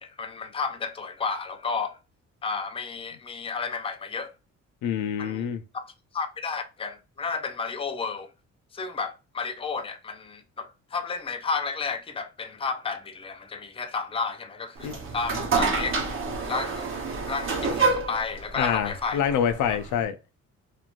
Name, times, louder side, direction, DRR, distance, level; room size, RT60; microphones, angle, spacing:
voice 1, 0.0-2.0 2.4-4.3 5.2-5.5 5.7-8.3 8.7-16.0 16.5-16.9 17.3-19.2 19.7-19.8, left 4 dB, 20° left, 0.5 m, -32 dB
voice 2, 4.8-5.6 14.8-15.0 18.6-20.2, left 8 dB, 80° left, 0.5 m, -26 dB
sound 1, 14.8-20.0, right 4 dB, 45° right, 0.9 m, -28 dB
3.0 x 2.5 x 2.4 m
cardioid pair, 90°, 30 cm